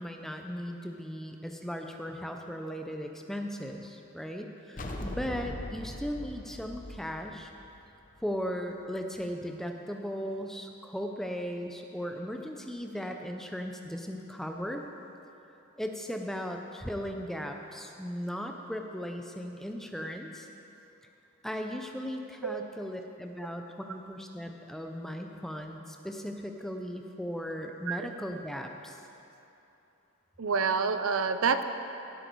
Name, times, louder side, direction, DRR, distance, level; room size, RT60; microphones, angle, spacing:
voice 1, 0.0-7.5 8.2-14.8 15.8-20.5 21.4-29.0, equal, ahead, 3 dB, 0.5 m, -37 dB
sound 1, 4.8-8.2, left 1 dB, 40° left, 0.8 m, -40 dB
voice 2, 30.4-31.6, right 5 dB, 80° right, 10 dB, 0.6 m, -28 dB
15.5 x 8.1 x 4.6 m, 2.9 s
head